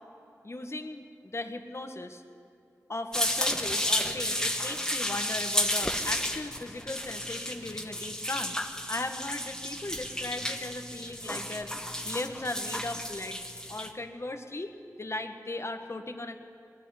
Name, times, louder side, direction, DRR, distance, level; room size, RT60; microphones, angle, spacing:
voice 1, 0.4-2.2 2.9-8.6 8.9-11.7 12.1-13.4 13.7-16.4, left 2 dB, 45° left, 6 dB, 1.7 m, -37 dB
sound 1, 3.1-13.9, left 1 dB, 10° left, 1.7 m, -32 dB
20.5 x 13.5 x 9.8 m, 2.7 s
cardioid pair, 40°, 6 cm